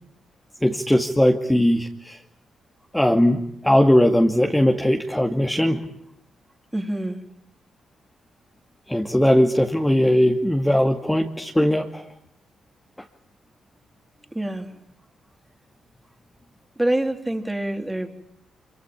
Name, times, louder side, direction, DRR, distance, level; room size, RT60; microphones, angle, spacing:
voice 1, 0.6-2.2 2.9-5.8 8.9-12.0, left 1 dB, 5° left, 2 dB, 2.3 m, -19 dB
voice 2, 6.7-7.2 14.3-14.7 16.8-18.1, right 1 dB, 10° right, 5 dB, 3.7 m, -25 dB
25.5 x 24.5 x 9.0 m, 0.74 s
cardioid pair, 70°, 0 cm